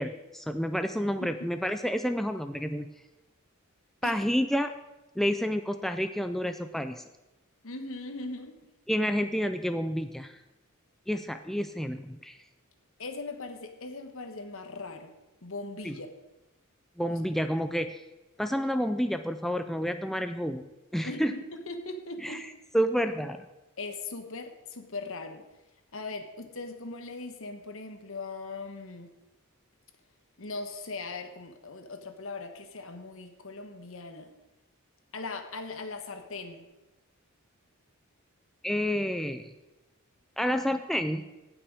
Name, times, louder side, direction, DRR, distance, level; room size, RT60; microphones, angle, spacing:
voice 1, 0.0-2.9 4.0-4.7 5.2-7.0 8.9-10.4 11.1-12.4 15.8-16.0 17.0-18.0 18.4-20.7 20.9-21.3 22.2-22.5 22.7-23.4 38.6-39.4 40.4-41.3, equal, ahead, 8 dB, 0.3 m, -29 dB
voice 2, 7.6-8.6 13.0-15.1 15.4-16.1 17.1-17.2 21.0-22.5 23.8-25.4 25.9-29.1 30.4-34.3 35.1-36.7, left 3 dB, 65° left, 7 dB, 1.2 m, -39 dB
17.0 x 6.1 x 4.8 m, 1.0 s
head